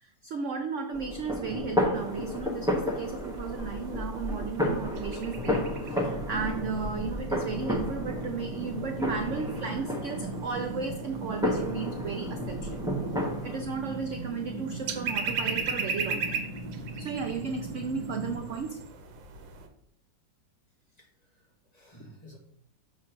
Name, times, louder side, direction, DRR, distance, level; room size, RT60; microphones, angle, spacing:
voice 1, 0.0-12.8 13.4-16.5 17.0-18.8, right 5 dB, 70° right, 5 dB, 0.7 m, -34 dB
sound 1, 0.9-13.6, left 1 dB, 5° right, 0.5 m, -32 dB
sound 2, 1.9-19.7, right 5 dB, 90° right, 1.5 m, -40 dB
sound 3, 5.3-18.3, right 1 dB, 25° right, 1.9 m, -39 dB
voice 2, 20.9-22.4, equal, 25° left, -2 dB, 1.4 m, -53 dB
6.4 x 3.6 x 6.0 m, 0.72 s
omnidirectional pair, 2.0 m